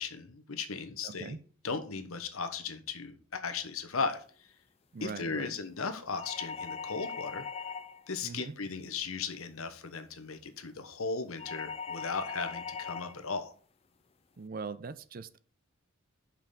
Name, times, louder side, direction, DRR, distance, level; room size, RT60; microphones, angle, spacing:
voice 1, 0.0-1.4 1.6-4.2 5.0-7.4 8.1-13.5, left 4 dB, 80° left, 1.1 m, -36 dB
voice 2, 1.0-1.4 4.9-5.5 8.2-8.5 14.4-15.4, right 4 dB, 40° right, 0.5 m, -41 dB
sound 1, 6.2-8.1 11.4-13.2, left 6 dB, 30° left, 0.4 m, -40 dB
5.9 x 5.5 x 6.7 m
head